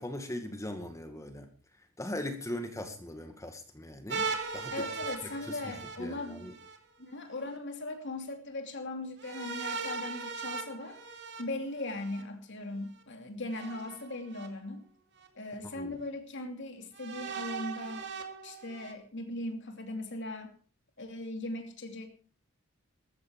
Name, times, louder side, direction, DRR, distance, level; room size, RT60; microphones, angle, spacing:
voice 1, 0.0-1.5 2.0-4.2 4.5-4.9 5.4-5.7 6.0-6.5 15.7-16.0, left 1 dB, 15° left, 6 dB, 1.9 m, -39 dB
sound 1, 4.1-6.8 9.2-12.2 13.5-14.5 15.2-15.3 16.9-18.9, right 5 dB, 60° right, 2.4 m, -39 dB
voice 2, 4.7-6.5 7.0-11.0 11.4-14.8 15.3-18.0 18.4-20.5 21.0-22.1, left 2 dB, 60° left, 5 dB, 2.8 m, -39 dB
14.5 x 14.0 x 4.7 m, 0.40 s
head